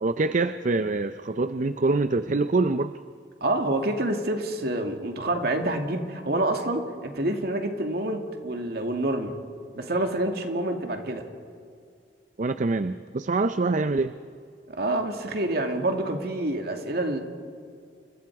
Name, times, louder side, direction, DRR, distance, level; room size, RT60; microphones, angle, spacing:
voice 1, 0.0-3.0 12.4-14.2, right 3 dB, 45° right, 11 dB, 0.5 m, -25 dB
voice 2, 3.4-9.4 9.7-11.3 14.7-17.2, right 1 dB, 65° right, 4 dB, 2.4 m, -27 dB
29.5 x 24.5 x 4.8 m, 2.3 s
head